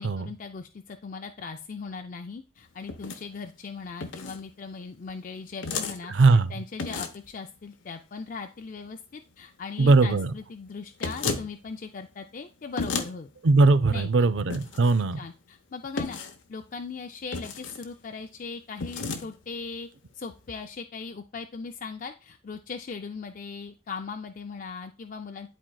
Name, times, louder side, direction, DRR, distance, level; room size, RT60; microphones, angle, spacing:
voice 1, 0.0-13.3 13.8-14.3 15.1-16.2 16.5-19.9 20.1-25.5, left 4 dB, 45° left, 0.4 m, -39 dB
sound 1, 2.9-3.2 4.0-4.4 5.6-6.0 6.8-7.3 11.0-11.5 12.8-13.1 14.5-14.9 16.0-16.4 17.3-17.9 18.8-19.2, left 4 dB, 80° left, 0.9 m, -32 dB
voice 2, 6.1-6.5 9.8-10.3 13.4-15.2, right 3 dB, 75° right, 0.5 m, -20 dB
11.0 x 4.4 x 2.3 m
head